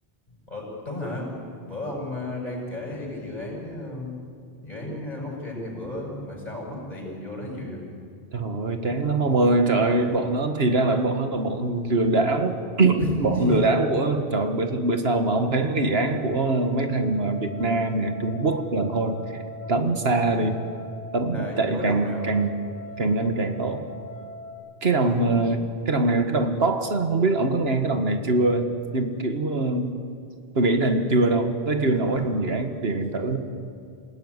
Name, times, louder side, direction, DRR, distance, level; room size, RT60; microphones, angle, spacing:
voice 1, 0.5-1.3 1.7-4.2 4.6-7.8 13.0-13.7 21.3-22.3 24.9-25.2 31.9-32.4 32.9-33.0, left 1 dB, 40° left, -1 dB, 7.5 m, -34 dB
voice 2, 8.3-19.4 19.7-20.6 21.1-22.5 23.0-23.9 24.8-30.0 30.5-33.4, right 2 dB, 80° right, 6 dB, 1.9 m, -23 dB
sound 1, 15.9-24.5, left 2 dB, 15° left, 3.6 m, -41 dB
27.5 x 18.0 x 9.7 m, 2.2 s
omnidirectional pair, 1.0 m